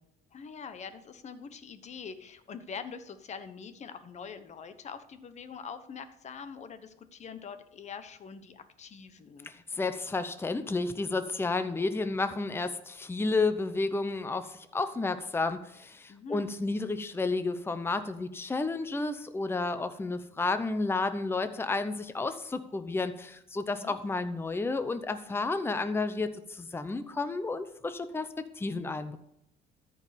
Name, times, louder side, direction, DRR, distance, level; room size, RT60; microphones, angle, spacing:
voice 1, 0.3-9.5 16.1-16.5 23.7-23.9, left 6 dB, 40° left, 11 dB, 1.1 m, -44 dB
voice 2, 9.4-29.2, left 3 dB, 15° left, 10 dB, 0.7 m, -31 dB
13.5 x 5.3 x 5.1 m, 0.78 s
cardioid pair, 110°, 17 cm